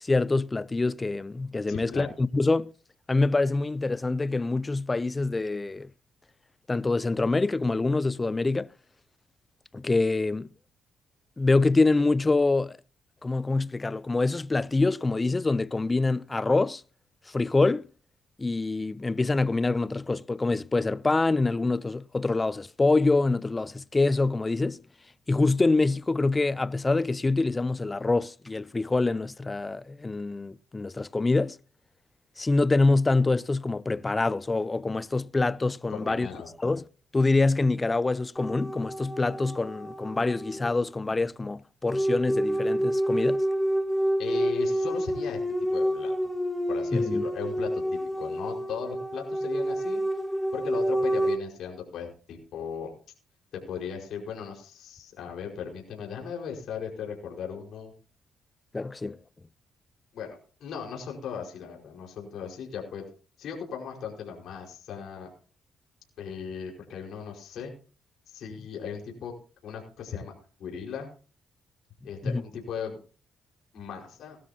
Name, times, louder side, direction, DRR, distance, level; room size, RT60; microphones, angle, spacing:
voice 1, 0.0-2.7 3.1-5.9 6.7-8.7 9.7-10.5 11.4-12.8 13.2-16.8 17.3-17.9 18.4-24.8 25.3-31.6 32.4-36.3 36.6-36.9 37.1-43.4 46.9-47.3 58.7-59.2 72.2-72.4, left 3 dB, 20° left, 0.5 m, -25 dB
voice 2, 1.7-2.1 35.9-36.5 44.2-45.4 45.7-46.1 46.7-50.0 50.5-52.9 53.5-57.9 60.1-63.0 63.4-65.3 66.2-67.7 68.3-69.3 69.6-70.3 70.6-71.1 72.0-73.0 73.7-74.4, left 7 dB, 70° left, 5.1 m, -37 dB
sound 1, 38.4-40.7 41.9-51.4, equal, ahead, 1.9 m, -28 dB
19.0 x 13.0 x 2.9 m
cardioid pair, 90°, 0 cm